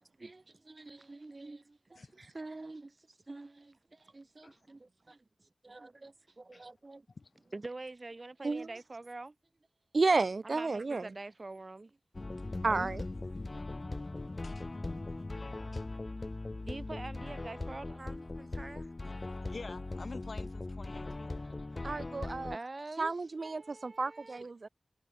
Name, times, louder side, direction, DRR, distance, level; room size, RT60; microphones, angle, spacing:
voice 1, 0.2-2.1 2.3-7.1 7.5-9.4 10.4-12.0 12.4-12.6 14.3-14.5 14.8-15.3 16.6-18.9 21.4-22.0 22.5-24.5, right 2 dB, 50° right, 2.4 m, -47 dB
voice 2, 2.0-2.3 4.4-4.6 6.5-6.7 7.2-7.3 12.4-12.9 13.3-13.5 14.4-14.7 15.7-15.9 19.5-21.3, left 3 dB, 70° left, 1.9 m, -47 dB
voice 3, 9.9-11.1 12.6-13.0 21.8-22.6 23.0-24.7, right 3 dB, 65° right, 0.4 m, -31 dB
sound 1, 12.1-22.6, left 2 dB, 45° left, 2.5 m, -40 dB
cardioid pair, 40°, 0 cm